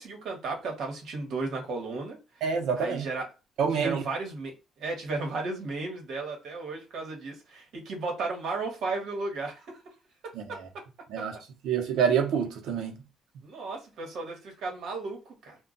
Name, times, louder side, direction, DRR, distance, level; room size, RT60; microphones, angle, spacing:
voice 1, 0.0-2.2 2.8-3.3 3.7-9.8 10.5-10.6 13.4-15.6, right 3 dB, 60° right, 1.1 m, -34 dB
voice 2, 2.4-3.1 3.6-4.0 10.3-10.4 11.1-11.4 11.6-12.9, right 7 dB, 75° right, 0.7 m, -27 dB
2.2 x 2.2 x 3.8 m
cardioid pair, 175°, 0 cm